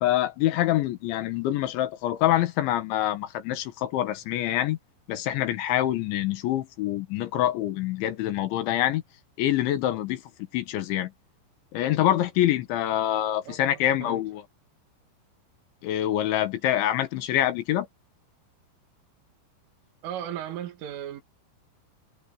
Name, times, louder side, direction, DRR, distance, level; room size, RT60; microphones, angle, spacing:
voice 1, 0.0-4.8 5.1-9.0 9.4-10.2 10.5-11.1 11.7-14.4 15.8-17.9, left 13 dB, 75° left, 3.6 m, -25 dB
voice 2, 20.0-21.2, right 10 dB, 80° right, 4.9 m, -35 dB
omnidirectional pair, 5.6 m